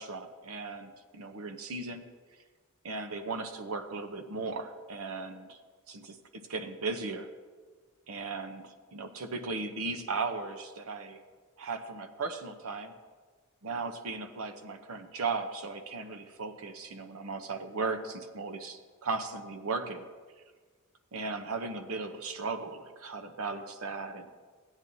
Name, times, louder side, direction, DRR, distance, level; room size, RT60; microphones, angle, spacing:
voice 1, 0.0-2.0 2.8-5.6 5.9-7.3 8.1-11.2 11.6-12.9 13.6-20.1 21.1-24.3, right 4 dB, 75° right, 6 dB, 0.8 m, -37 dB
15.0 x 9.0 x 2.7 m, 1.5 s
head